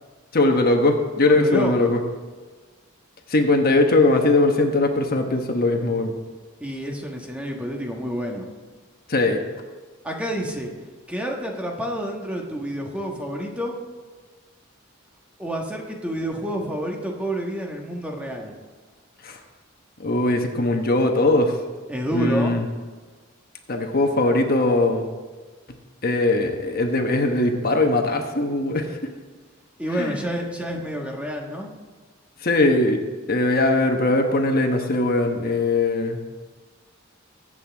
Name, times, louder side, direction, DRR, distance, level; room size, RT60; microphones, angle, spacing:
voice 1, 0.3-2.0 3.3-6.1 9.1-9.4 19.2-19.4 20.0-21.6 22.1-22.6 23.7-25.0 26.0-29.0 30.0-30.3 32.4-33.0 33.3-36.2, left 2 dB, 45° left, 3 dB, 1.2 m, -20 dB
voice 2, 1.2-1.9 6.6-8.5 10.0-10.7 11.1-13.8 15.4-18.5 21.9-22.6 29.8-31.7, equal, 5° right, 0 dB, 1.4 m, -29 dB
22.0 x 8.2 x 3.5 m, 1.4 s
head